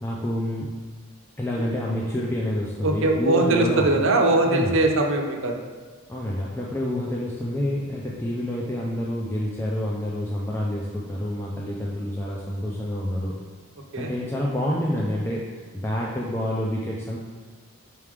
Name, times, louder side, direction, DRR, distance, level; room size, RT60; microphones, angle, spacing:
voice 1, 0.0-0.7 1.4-4.1 4.5-4.8 6.1-13.3 14.0-17.2, left 1 dB, 10° left, -4 dB, 0.4 m, -28 dB
voice 2, 2.8-5.5 13.9-14.1, right 2 dB, 60° right, 2 dB, 0.7 m, -21 dB
5.7 x 4.7 x 3.6 m, 1.4 s
head